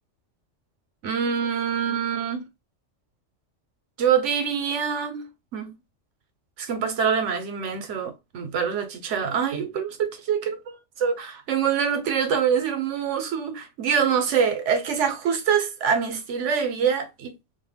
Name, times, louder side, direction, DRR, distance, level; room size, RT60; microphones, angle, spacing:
voice 1, 1.0-2.5 4.0-5.8 6.6-10.5 11.0-17.4, right 7 dB, 75° right, 1.0 m, -25 dB
2.6 x 2.1 x 3.3 m
omnidirectional pair, 1.3 m